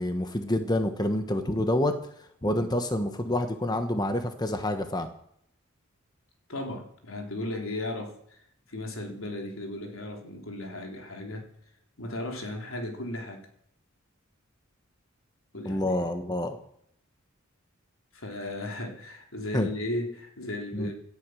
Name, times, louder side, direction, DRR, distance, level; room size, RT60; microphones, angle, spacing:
voice 1, 0.0-1.9 2.4-5.1 15.6-16.6 19.5-19.7 20.7-20.9, left 1 dB, 20° left, 7 dB, 1.3 m, -27 dB
voice 2, 6.5-8.4 8.7-11.5 12.0-13.5 15.5-16.0 18.1-20.9, left 1 dB, 80° left, 2 dB, 3.6 m, -35 dB
17.5 x 12.5 x 6.4 m, 0.72 s
head